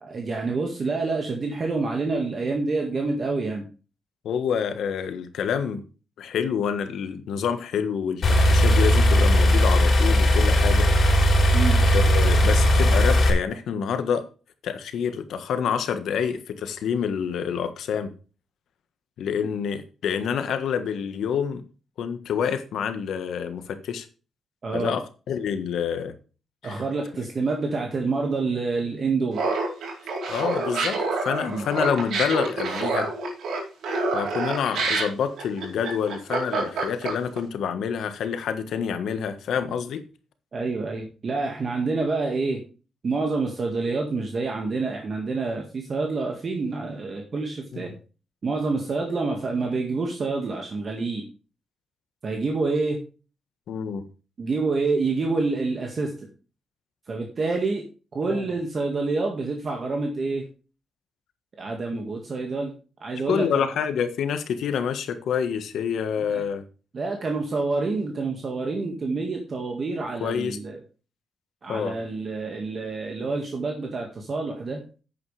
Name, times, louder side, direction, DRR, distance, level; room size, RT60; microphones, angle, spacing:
voice 1, 0.0-3.6 11.5-11.8 24.6-24.9 26.6-29.4 31.5-31.7 40.5-42.6 43.0-47.9 48.4-51.2 52.2-53.0 54.4-56.3 57.1-57.8 58.1-60.5 61.6-62.7 63.0-63.7 66.3-66.4 66.9-70.8 71.6-74.8, right 3 dB, 35° right, 1 dB, 1.8 m, -27 dB
voice 2, 4.2-5.8 6.2-10.9 11.8-14.2 14.6-18.1 19.2-21.6 22.0-24.1 24.7-26.1 26.6-26.8 30.3-33.1 34.1-40.0 47.7-47.9 53.7-54.1 58.3-58.5 61.9-62.0 63.3-66.6 70.2-70.6 71.7-72.0, left 7 dB, 80° left, 9 dB, 1.4 m, -27 dB
sound 1, 8.2-13.3, equal, 45° left, 3.6 m, -18 dB
Laughter, 29.3-37.4, right 3 dB, 85° right, 4.6 m, -27 dB
11.0 x 8.7 x 3.4 m, 0.35 s
wide cardioid pair, 160°, 0 cm